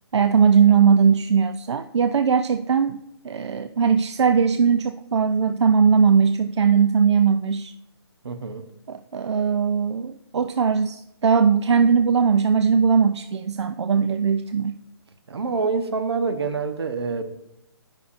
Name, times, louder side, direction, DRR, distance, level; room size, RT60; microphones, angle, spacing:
voice 1, 0.1-7.7 8.9-14.8, right 6 dB, 85° right, 9 dB, 0.4 m, -19 dB
voice 2, 8.2-8.6 15.3-17.3, right 4 dB, 70° right, 9 dB, 0.9 m, -26 dB
12.5 x 5.7 x 2.5 m, 0.84 s
hypercardioid pair, 170°, 14 cm